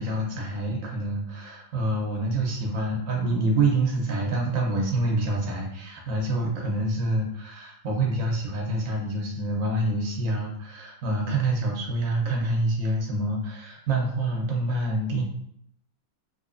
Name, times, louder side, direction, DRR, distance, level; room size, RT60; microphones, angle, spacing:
voice 1, 0.0-15.2, right 2 dB, 65° right, -1 dB, 0.8 m, -27 dB
4.0 x 2.6 x 2.5 m, 0.71 s
omnidirectional pair, 2.2 m